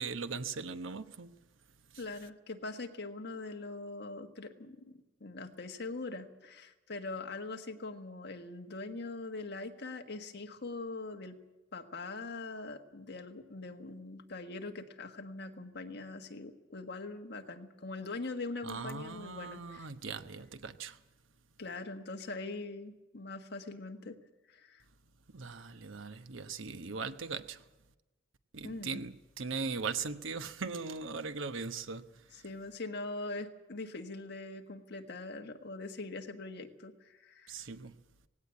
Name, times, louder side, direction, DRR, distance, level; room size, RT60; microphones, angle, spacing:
voice 1, 0.0-1.3 1.9-2.0 18.6-21.0 25.3-27.6 28.5-32.4 37.5-38.0, right 4 dB, 90° right, 1.0 m, -39 dB
voice 2, 2.0-4.9 5.2-11.4 11.7-19.9 21.6-24.2 24.5-24.8 28.6-29.0 32.3-37.5, left 3 dB, 60° left, 1.6 m, -42 dB
18.0 x 17.0 x 8.6 m
head